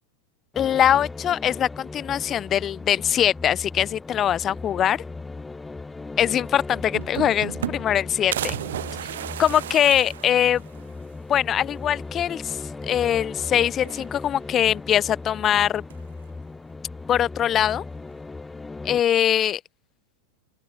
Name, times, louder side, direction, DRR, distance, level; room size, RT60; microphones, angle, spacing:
sound 1, 0.5-19.0, left 3 dB, 10° left, 0.8 m, -38 dB
voice 1, 0.6-5.0 6.2-8.5 9.4-10.6 11.3-15.8 17.1-17.8 18.8-19.6, left 10 dB, 25° left, 0.3 m, -22 dB
sound 2, 6.3-6.4 6.7-8.0 8.3-10.9 11.3-11.4 11.7-11.8 12.9-13.4 13.8-14.5 15.6-16.1, right 12 dB, 60° right, 0.5 m, -34 dB
open air
figure-of-eight pair, 90°, 0 cm